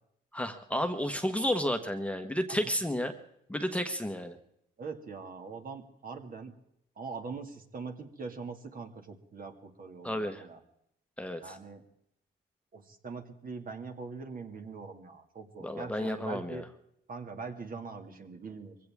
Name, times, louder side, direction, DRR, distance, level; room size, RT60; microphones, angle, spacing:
voice 1, 0.3-3.1 3.5-4.4 10.0-10.4 11.2-11.6 15.6-16.6, equal, 5° left, 6 dB, 1.3 m, -32 dB
voice 2, 4.8-6.5 7.0-10.6 11.4-11.8 12.7-16.7 17.1-18.8, right 4 dB, 45° right, 5 dB, 2.2 m, -42 dB
22.5 x 16.5 x 3.6 m, 0.75 s
cardioid pair, 90°, 20 cm